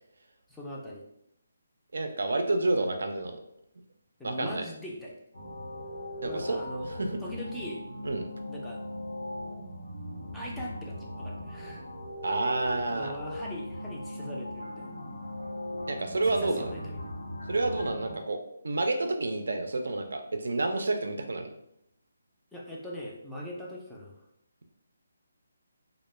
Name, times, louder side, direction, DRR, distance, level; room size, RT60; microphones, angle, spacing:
voice 1, 0.5-1.0 4.2-5.2 6.2-6.9 7.2-7.8 8.5-8.8 10.3-11.9 12.9-15.0 16.4-17.0 22.5-24.2, equal, 5° left, -5 dB, 0.3 m, -40 dB
voice 2, 1.9-3.4 4.2-4.7 6.2-6.6 7.0-7.1 8.0-8.3 12.2-13.1 15.9-16.7 17.5-18.4 18.6-21.5, right 2 dB, 80° right, 5 dB, 0.4 m, -29 dB
sound 1, 5.3-18.2, left 1 dB, 90° left, 0.9 m, -39 dB
2.1 x 2.0 x 3.1 m, 0.76 s
hypercardioid pair, 165°, 0 cm